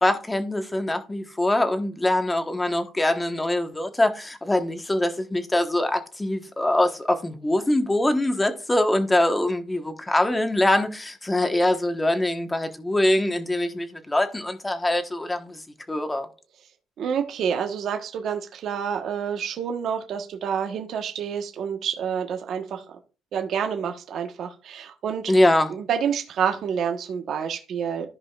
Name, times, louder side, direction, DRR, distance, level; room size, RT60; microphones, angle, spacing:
voice 1, 0.0-15.6 15.9-16.3 25.3-25.7, left 1 dB, 15° left, 1.2 m, -23 dB
voice 2, 17.0-22.8 23.3-25.3 25.7-28.1, right 7 dB, 60° right, 1.2 m, -28 dB
14.5 x 5.0 x 2.4 m
cardioid pair, 105°, 0 cm